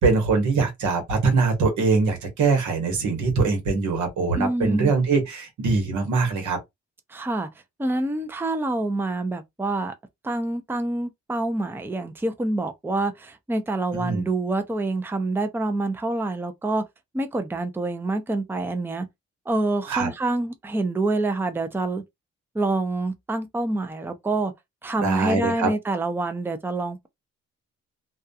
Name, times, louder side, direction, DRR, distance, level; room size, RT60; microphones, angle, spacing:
voice 1, 0.0-6.6 13.9-14.2 19.9-20.1 25.0-25.7, right 4 dB, 85° right, 1.1 m, -22 dB
voice 2, 4.4-4.9 7.1-7.5 7.8-9.9 10.2-16.8 17.1-19.1 19.5-22.0 22.5-24.5 24.8-27.1, right 2 dB, 5° right, 0.5 m, -26 dB
2.3 x 2.3 x 2.6 m
supercardioid pair, 65°, 29 cm